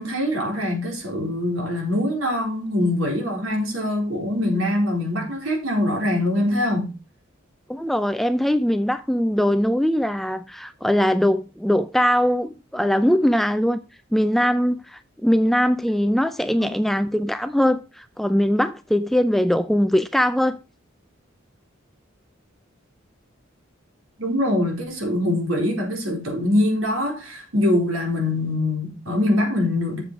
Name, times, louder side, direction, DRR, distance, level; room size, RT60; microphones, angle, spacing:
voice 1, 0.0-6.9 16.6-16.7 24.2-30.0, left 1 dB, 85° right, 4.2 m, -23 dB
voice 2, 7.7-13.8 14.1-20.6, equal, ahead, 0.4 m, -21 dB
7.6 x 7.2 x 4.9 m
head